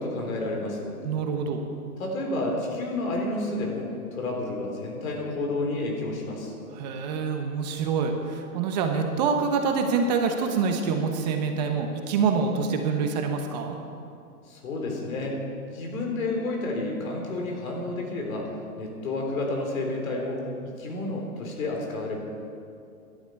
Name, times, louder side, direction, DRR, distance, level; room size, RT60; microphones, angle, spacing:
voice 1, 0.0-1.0 2.0-6.5 14.5-15.4 15.7-18.5 18.8-22.2, left 2 dB, 65° left, 0 dB, 3.9 m, -30 dB
voice 2, 1.0-1.6 6.7-13.8, right 5 dB, 30° right, 4 dB, 1.0 m, -26 dB
17.0 x 11.5 x 4.7 m, 2.5 s
hypercardioid pair, 150°, 45 cm